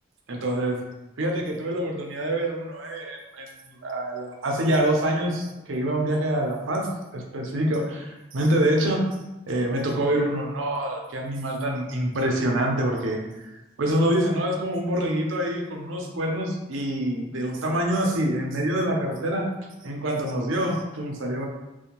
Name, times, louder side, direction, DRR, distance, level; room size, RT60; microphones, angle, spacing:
voice 1, 0.3-0.8 1.2-3.5 3.8-9.0 9.5-13.5 13.8-19.5 19.8-21.5, right 1 dB, 80° right, 1 dB, 0.5 m, -26 dB
2.5 x 2.1 x 2.9 m, 1.0 s
head